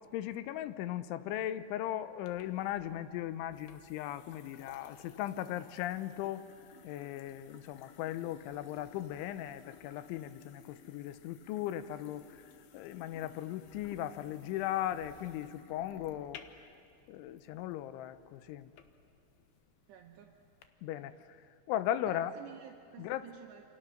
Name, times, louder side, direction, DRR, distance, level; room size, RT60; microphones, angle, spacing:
voice 1, 0.1-6.5 6.8-16.7 17.1-18.7 20.8-21.4 21.7-22.3 23.0-23.3, left 12 dB, 90° left, 13 dB, 3.2 m, -38 dB
sound 1, 2.2-20.7, left 8 dB, 70° left, 2.7 m, -57 dB
voice 2, 19.9-20.4 22.0-23.7, right 11 dB, 75° right, 2 dB, 3.0 m, -52 dB
28.0 x 26.5 x 6.5 m, 2.5 s
omnidirectional pair, 5.3 m